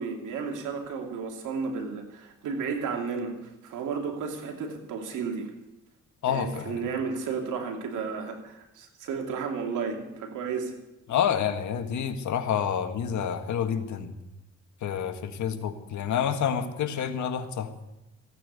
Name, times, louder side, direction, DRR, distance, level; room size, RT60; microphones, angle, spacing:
voice 1, 0.0-5.5 6.3-10.7, right 5 dB, 85° right, 3 dB, 2.8 m, -33 dB
voice 2, 6.2-6.8 11.1-14.1 14.8-17.7, left 8 dB, 70° left, 7 dB, 1.7 m, -28 dB
15.5 x 9.2 x 9.5 m, 0.93 s
cardioid pair, 90°, 30 cm